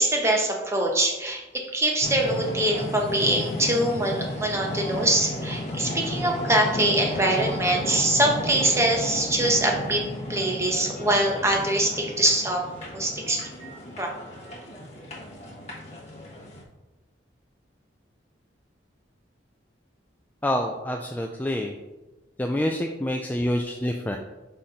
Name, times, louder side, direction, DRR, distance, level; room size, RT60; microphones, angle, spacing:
voice 1, 0.0-10.0 10.3-12.6 12.9-13.4 14.0-14.1, right 1 dB, 15° right, 1 dB, 1.0 m, -23 dB
sound 1, 2.0-16.6, left 1 dB, 35° left, 1.2 m, -33 dB
voice 2, 20.4-21.7 22.4-24.2, left 1 dB, 10° left, 2 dB, 0.3 m, -27 dB
5.8 x 4.1 x 5.0 m, 1.1 s
head